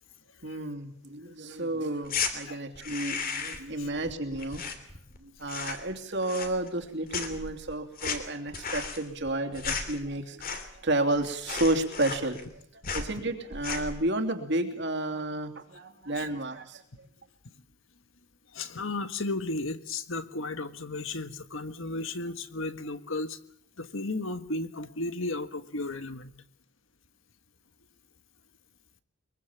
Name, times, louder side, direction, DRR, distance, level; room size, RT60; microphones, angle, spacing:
voice 1, 0.4-4.7 5.2-16.8, right 2 dB, 50° right, 6 dB, 3.0 m, -31 dB
sound 1, 2.0-2.3 2.7-3.7 4.0-5.2 5.4-5.9 6.2-6.8 7.1-10.9 11.2-11.3 11.5-12.6 12.8-13.1 13.5-14.0, left 5 dB, 40° left, 3.0 m, -34 dB
voice 2, 18.5-23.4 23.8-26.3, left 2 dB, 60° left, 10 dB, 1.6 m, -34 dB
23.5 x 23.0 x 7.4 m, 0.65 s
head